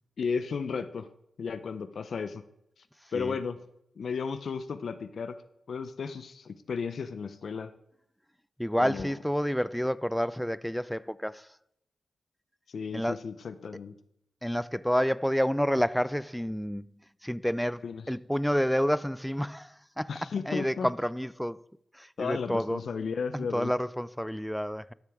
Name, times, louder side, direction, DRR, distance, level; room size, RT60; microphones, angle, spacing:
voice 1, 0.2-1.1 1.4-2.4 3.1-3.6 4.0-5.4 5.7-7.7 8.8-9.2 12.7-14.0 17.8-18.1 20.1-20.9 22.2-23.7, left 5 dB, 70° left, 0.5 m, -34 dB
voice 2, 8.6-11.4 12.9-13.2 14.4-16.8 17.2-19.7 20.0-20.1 20.5-21.6 22.0-22.8 23.3-24.9, equal, ahead, 0.3 m, -29 dB
12.5 x 6.6 x 3.5 m
cardioid pair, 70°, 0 cm